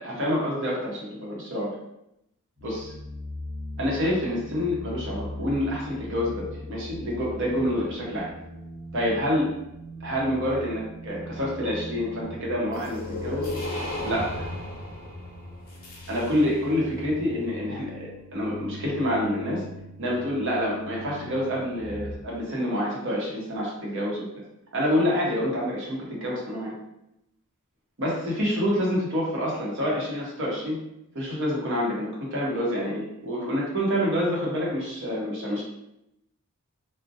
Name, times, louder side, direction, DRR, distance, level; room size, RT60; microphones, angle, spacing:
voice 1, 0.0-1.8 2.6-2.9 3.8-8.3 8.9-9.5 10.0-13.5 14.0-14.4 16.1-19.6 20.0-24.2 24.7-26.7 28.0-30.8 31.1-35.6, equal, 60° right, -4 dB, 0.8 m, -27 dB
sound 1, 2.6-22.2, left 1 dB, 10° right, 0.7 m, -41 dB
sound 2, 12.7-16.7, left 1 dB, 45° left, 0.6 m, -35 dB
2.5 x 2.1 x 2.6 m, 0.84 s
head